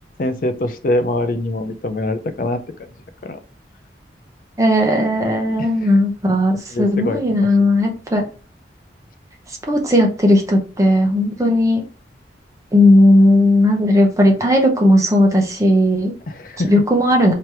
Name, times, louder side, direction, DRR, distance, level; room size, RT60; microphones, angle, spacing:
voice 1, 0.2-2.6 3.2-3.4 5.6-5.9 6.7-7.5 16.3-16.7, left 1 dB, 50° left, 10 dB, 0.4 m, -23 dB
voice 2, 4.6-8.2 9.7-11.8 12.7-16.1 16.7-17.3, left 1 dB, 15° right, 1 dB, 0.8 m, -15 dB
3.2 x 2.9 x 4.7 m, 0.37 s
head